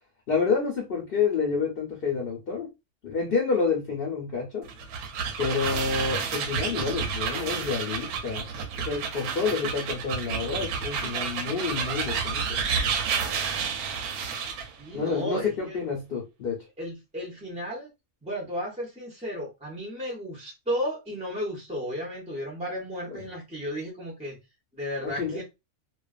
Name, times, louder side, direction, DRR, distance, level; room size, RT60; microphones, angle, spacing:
voice 1, 0.3-2.7 3.0-4.7 5.4-8.5 8.8-12.6 14.9-16.6 23.1-23.2 25.0-25.4, left 5 dB, 50° left, 0.8 m, -28 dB
sound 1, 4.6-14.7, right 6 dB, 85° right, 1.1 m, -30 dB
voice 2, 14.8-15.8 16.8-17.9 18.2-24.4 24.7-25.4, equal, 5° right, 0.5 m, -34 dB
2.4 x 2.4 x 2.3 m
omnidirectional pair, 1.5 m